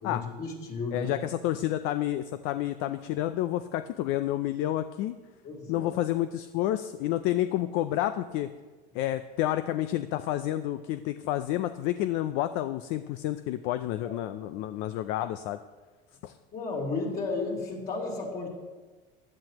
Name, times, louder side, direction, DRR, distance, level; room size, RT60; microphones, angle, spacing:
voice 1, 0.0-1.1 5.4-5.9 14.0-14.1 16.5-18.5, left 3 dB, 45° left, -2 dB, 3.5 m, -33 dB
voice 2, 0.9-5.2 5.7-8.5 8.9-15.6 16.2-16.3, left 13 dB, 70° left, 11 dB, 0.5 m, -29 dB
15.0 x 10.5 x 3.0 m, 1.3 s
supercardioid pair, 110°, 21 cm